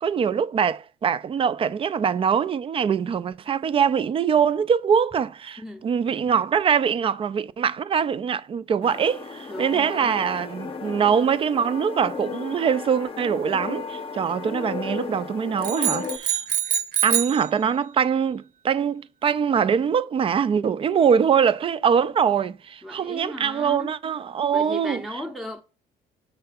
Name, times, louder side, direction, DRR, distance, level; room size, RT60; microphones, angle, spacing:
voice 1, 0.0-16.4 17.0-25.2, right 7 dB, 30° right, 0.3 m, -23 dB
voice 2, 5.6-5.9 6.2-6.3 9.5-10.2 22.8-23.9 24.5-25.6, equal, ahead, 0.7 m, -36 dB
sound 1, 8.8-16.2, left 5 dB, 30° left, 0.7 m, -34 dB
sound 2, 15.6-17.4, right 10 dB, 60° right, 1.0 m, -25 dB
6.6 x 3.4 x 5.6 m
cardioid pair, 105°, 18 cm